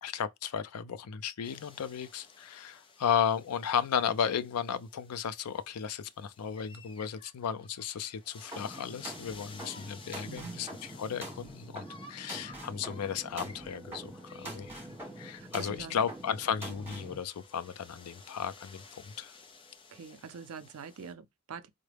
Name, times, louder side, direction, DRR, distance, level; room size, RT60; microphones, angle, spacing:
voice 1, 0.0-10.7 11.0-14.7 15.2-19.3, left 8 dB, 90° left, 0.4 m, -34 dB
sound 1, 1.4-21.1, left 4 dB, 25° left, 0.5 m, -55 dB
sound 2, 8.5-17.2, right 1 dB, 10° right, 1.6 m, -45 dB
voice 2, 10.2-10.7 15.3-16.0 19.9-21.7, right 6 dB, 80° right, 0.5 m, -45 dB
sound 3, 13.0-20.2, right 1 dB, 5° left, 1.9 m, -58 dB
3.7 x 2.1 x 3.3 m
head